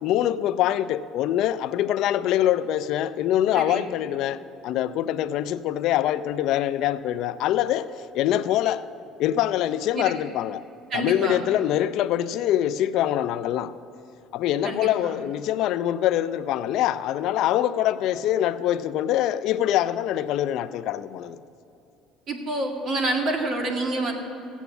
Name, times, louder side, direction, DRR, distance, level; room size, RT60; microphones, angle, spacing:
voice 1, 0.0-8.9 9.2-10.6 10.9-13.7 14.3-21.4, left 12 dB, 65° left, 0.5 m, -24 dB
voice 2, 3.5-3.9 10.0-10.1 10.9-11.4 14.6-15.2 22.3-24.1, right 2 dB, 45° right, 2.0 m, -27 dB
15.5 x 8.2 x 7.0 m
cardioid pair, 120°, 0 cm